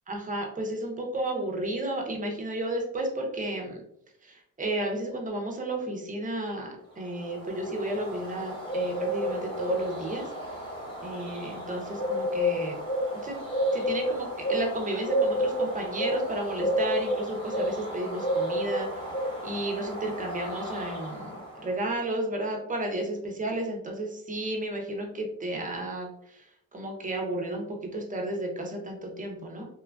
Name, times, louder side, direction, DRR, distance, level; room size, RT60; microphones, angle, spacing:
voice 1, 0.1-3.8 4.2-10.3 11.0-12.8 13.2-13.4 13.7-19.0 19.4-26.1 26.7-29.6, right 1 dB, 25° right, 1 dB, 0.6 m, -32 dB
Bird, 7.0-21.7, equal, 15° left, 1.2 m, -31 dB
3.0 x 2.3 x 2.2 m, 0.74 s
wide cardioid pair, 135°, 30 cm